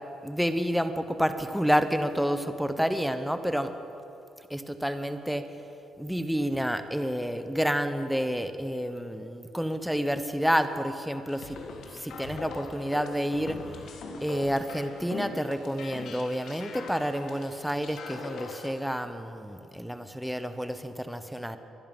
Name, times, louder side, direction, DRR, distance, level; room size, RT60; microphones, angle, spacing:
voice 1, 0.2-3.7 4.5-5.5 6.0-11.6 11.9-13.6 14.2-21.6, equal, ahead, 9 dB, 0.9 m, -29 dB
sound 1, 11.3-18.8, left 4 dB, 70° left, 1.7 m, -42 dB
24.5 x 11.0 x 5.4 m, 2.7 s
cardioid pair, 90°, 0 cm